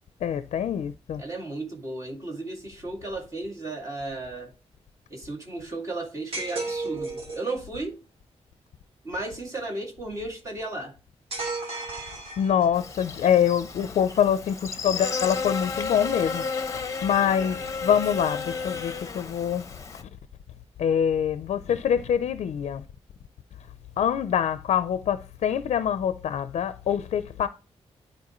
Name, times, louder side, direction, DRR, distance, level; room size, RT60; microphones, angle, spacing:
voice 1, 0.2-1.2 12.4-16.4 17.0-19.6 20.8-22.8 24.0-27.5, left 9 dB, 80° left, 0.5 m, -25 dB
voice 2, 1.2-4.5 5.1-8.0 9.0-11.0 17.2-17.7, right 2 dB, 30° right, 2.2 m, -35 dB
sound 1, 6.3-7.5 11.3-12.9, right 3 dB, 60° right, 2.5 m, -33 dB
Buzz, 12.7-20.0, left 4 dB, 30° left, 0.8 m, -33 dB
12.0 x 4.5 x 3.0 m
wide cardioid pair, 175°, 11 cm